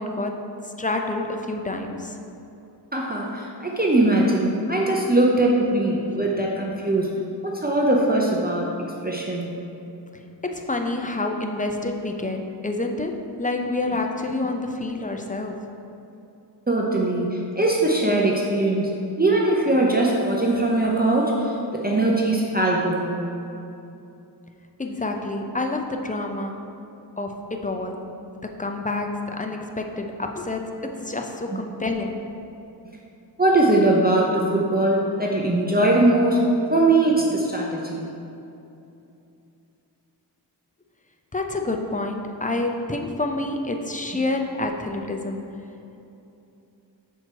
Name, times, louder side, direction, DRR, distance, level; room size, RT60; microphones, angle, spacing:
voice 1, 0.0-2.2 10.4-15.7 24.8-26.7 27.2-28.1 28.6-32.2 41.3-45.5, left 2 dB, 20° left, 3 dB, 0.5 m, -28 dB
voice 2, 2.9-7.1 7.4-8.7 9.0-9.7 16.7-18.9 19.2-23.3 33.4-38.0, right 2 dB, 20° right, -2 dB, 0.7 m, -21 dB
6.3 x 4.5 x 4.6 m, 2.8 s
wide cardioid pair, 70°, 43 cm